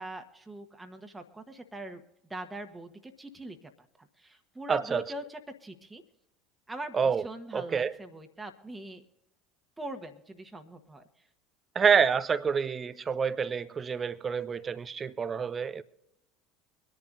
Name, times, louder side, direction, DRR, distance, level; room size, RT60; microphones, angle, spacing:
voice 1, 0.0-2.0 2.3-3.7 4.0-6.0 6.7-9.0 9.8-11.0, right 1 dB, 10° right, 1.4 m, -42 dB
voice 2, 4.7-5.0 6.9-7.2 7.5-7.9 11.7-15.8, right 6 dB, 30° right, 0.7 m, -27 dB
24.5 x 11.0 x 2.6 m
figure-of-eight pair, 70°, 0 cm